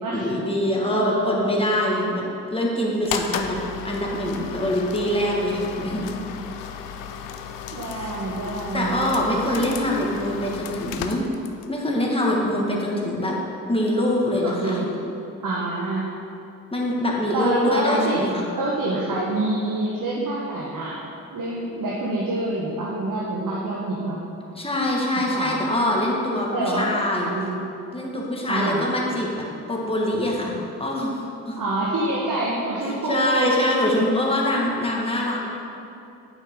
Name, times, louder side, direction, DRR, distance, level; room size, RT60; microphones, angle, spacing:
voice 1, 0.1-2.2 2.5-3.6 3.8-6.1 7.8-8.1 8.7-11.2 11.7-13.4 13.7-14.9 16.7-18.5 24.6-27.3 27.9-31.6 32.8-35.5, left 1 dB, 15° left, -3 dB, 2.0 m, -24 dB
voice 2, 0.9-1.5 7.7-9.1 14.4-14.9 15.4-16.0 17.3-18.2 18.6-21.0 21.3-24.2 25.3-25.5 26.5-26.9 27.1-27.6 28.5-28.8 31.6-33.5, right 2 dB, 55° right, -5 dB, 1.4 m, -26 dB
sound 1, 3.0-11.8, left 8 dB, 85° left, 0.6 m, -34 dB
8.7 x 7.2 x 3.8 m, 2.7 s
hypercardioid pair, 45°, 39 cm